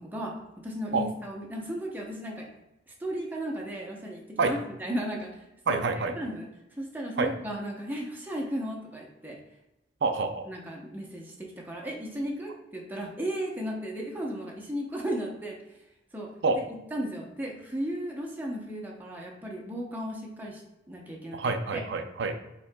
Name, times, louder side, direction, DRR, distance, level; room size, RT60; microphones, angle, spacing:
voice 1, 0.0-2.5 3.0-6.5 6.8-9.4 10.5-15.6 16.1-16.3 16.9-20.6 20.9-21.4 21.7-21.8, equal, 10° right, -2 dB, 0.7 m, -35 dB
voice 2, 5.7-6.1 7.2-7.3 10.0-10.5 16.4-16.6 21.3-22.4, right 4 dB, 65° right, 7 dB, 0.5 m, -27 dB
6.0 x 3.7 x 2.2 m, 0.95 s
head